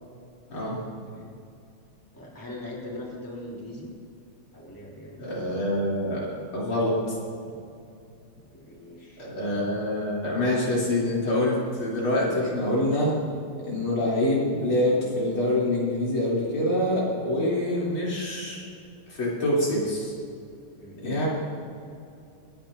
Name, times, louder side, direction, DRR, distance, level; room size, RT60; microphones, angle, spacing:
voice 1, 2.1-3.9 4.5-5.9 8.5-9.2 20.8-21.0, left 1 dB, 10° left, -4 dB, 2.8 m, -41 dB
voice 2, 5.2-6.3 6.5-6.9 9.2-13.1 13.7-18.6 19.2-20.1 21.0-21.3, left 1 dB, 75° left, -6 dB, 3.9 m, -25 dB
26.5 x 10.5 x 2.6 m, 2.6 s
omnidirectional pair, 2.4 m